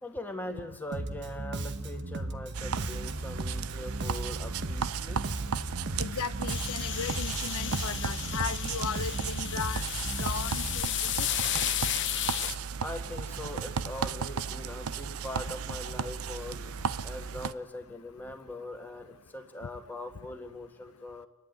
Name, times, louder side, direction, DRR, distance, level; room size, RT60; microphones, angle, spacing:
voice 1, 0.0-5.3 12.8-16.7 17.0-21.3, left 1 dB, 10° left, 4 dB, 1.9 m, -41 dB
Bass guitar, 0.9-10.8, right 2 dB, 55° right, 1.1 m, -36 dB
sound 1, 2.5-17.5, right 6 dB, 75° right, 0.6 m, -35 dB
voice 2, 6.0-9.8 10.2-11.3, left 6 dB, 80° left, 13 dB, 0.7 m, -36 dB
sound 2, 6.5-12.6, left 12 dB, 55° left, 0.9 m, -33 dB
29.5 x 11.0 x 9.5 m, 1.2 s
head